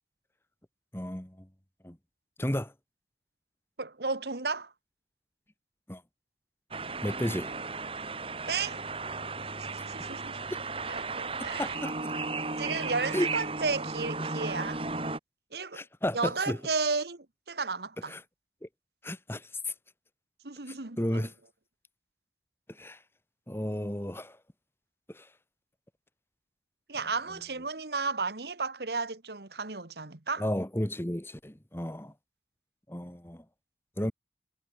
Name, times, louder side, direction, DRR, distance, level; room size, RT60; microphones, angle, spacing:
voice 1, 0.9-1.5 1.8-2.0 2.4-2.7 5.9-6.0 7.0-7.5 11.6-12.1 13.1-13.3 15.7-16.6 18.1-18.2 18.6-18.7 19.0-19.7 20.7-21.3 22.7-23.0 23.5-24.4 25.1-25.3 30.4-32.1 32.9-33.4 34.0-34.1, left 1 dB, 15° left, 1.5 m, -33 dB
voice 2, 3.8-4.7 8.5-8.8 9.6-10.4 10.9-11.8 12.6-14.8 15.5-15.8 16.1-18.2 20.4-21.3 26.9-30.5, right 4 dB, 65° right, 1.6 m, -33 dB
sound 1, 6.7-15.2, right 3 dB, 30° right, 3.8 m, -35 dB
head